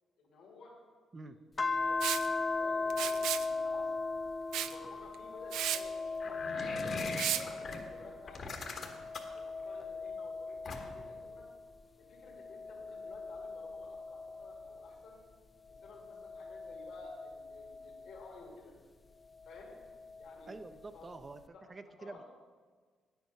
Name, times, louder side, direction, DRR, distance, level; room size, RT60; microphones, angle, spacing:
voice 1, 0.2-0.7 1.2-3.9 4.5-6.8 7.3-8.9 9.3-11.4 12.0-15.2 15.8-18.7 19.4-19.7 20.2-20.6 20.9-21.1 21.5-21.6 22.0-22.2, left 3 dB, 75° left, -3 dB, 2.3 m, -54 dB
sound 1, 1.6-8.3 8.7-11.6 12.2-15.0 15.8-18.2 19.6-20.6, left 3 dB, 30° left, 0.4 m, -38 dB
Liquid, 2.0-2.3 2.9-3.5 4.5-4.7 5.1-5.2 5.5-5.8 7.2-7.4, right 11 dB, 85° right, 0.4 m, -33 dB
sound 2, 6.2-7.8 8.3-9.4 10.6-11.1, left 3 dB, 55° left, 1.4 m, -40 dB
voice 2, 20.5-21.4 21.7-22.2, right 3 dB, 30° right, 9 dB, 0.5 m, -47 dB
9.1 x 8.0 x 5.5 m, 1.5 s
cardioid pair, 90°, 0 cm